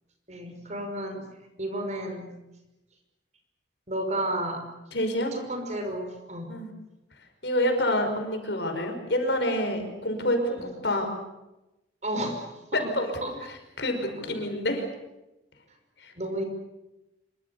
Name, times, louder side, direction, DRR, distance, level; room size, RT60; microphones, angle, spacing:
voice 1, 0.3-1.2 1.6-2.3 3.9-4.6 5.3-6.5 10.6-10.7 12.0-12.9 13.2-13.3 14.0-14.4 16.2-16.4, right 1 dB, 40° right, 5 dB, 5.6 m, -32 dB
voice 2, 4.9-5.3 6.5-6.7 7.4-11.1 12.7-13.1 13.8-14.9 16.0-16.1, left 1 dB, 70° left, 5 dB, 5.5 m, -27 dB
26.5 x 24.5 x 7.1 m, 0.97 s
head